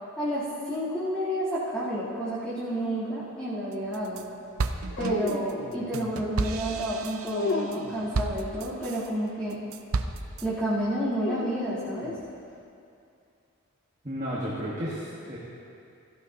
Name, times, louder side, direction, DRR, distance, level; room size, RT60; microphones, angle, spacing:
voice 1, 0.2-4.2 5.0-9.6 10.4-12.1, equal, 5° left, -13 dB, 3.2 m, -30 dB
sound 1, 3.7-4.2 4.6-9.1 9.5-10.5, right 3 dB, 80° right, 0.6 m, -32 dB
sound 2, 4.9-6.0 7.3-8.1 11.2-12.2, left 2 dB, 55° left, 0.6 m, -33 dB
voice 2, 14.0-15.4, equal, 30° right, -7 dB, 1.5 m, -33 dB
17.5 x 13.5 x 2.9 m, 2.5 s
head